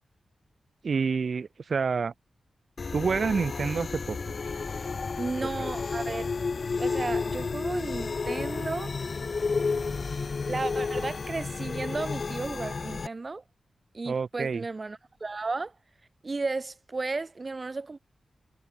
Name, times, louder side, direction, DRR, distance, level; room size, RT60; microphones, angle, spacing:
voice 1, 0.8-2.1 2.9-4.3 5.4-5.5 14.1-14.6, right 5 dB, 65° right, 2.1 m, -28 dB
sound 1, 2.8-13.1, left 4 dB, 55° left, 1.3 m, -31 dB
voice 2, 5.2-6.3 6.8-9.0 10.4-13.4 13.9-15.7 16.2-18.0, right 3 dB, 40° right, 4.4 m, -34 dB
cardioid pair, 75°, 0 cm